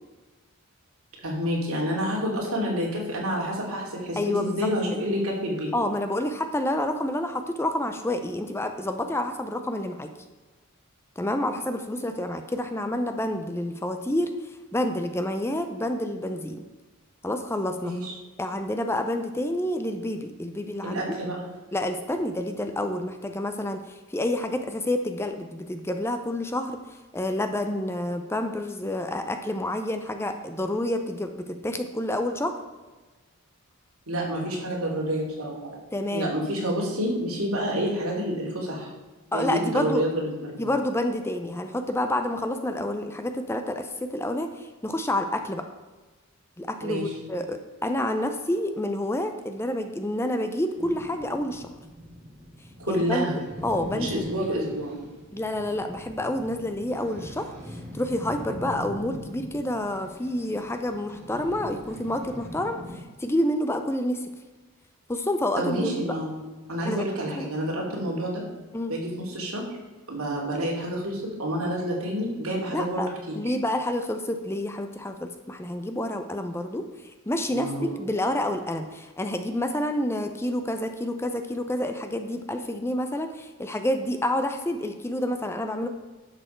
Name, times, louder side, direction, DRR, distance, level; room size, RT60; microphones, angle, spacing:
voice 1, 1.2-5.7 17.8-18.1 20.8-21.4 34.1-35.8 36.1-38.9 39.3-40.6 46.8-47.1 52.8-53.4 53.9-55.0 65.5-66.4 66.7-68.4 68.9-69.7 70.1-73.4 77.5-77.9, equal, 75° right, -2 dB, 2.9 m, -28 dB
voice 2, 4.2-5.0 5.7-10.1 11.2-16.6 17.2-17.9 18.4-21.0 21.7-26.8 27.1-32.5 35.9-36.4 39.3-40.0 40.6-45.6 46.6-51.7 52.9-53.3 53.6-54.3 55.3-62.8 63.2-64.3 65.1-66.2 66.8-67.0 67.3-67.5 68.7-68.9 72.7-73.1 73.3-85.9, left 1 dB, 10° left, 7 dB, 0.5 m, -28 dB
sound 1, 50.8-63.0, left 1 dB, 30° right, 2.8 m, -41 dB
11.0 x 6.9 x 4.5 m, 1.2 s
head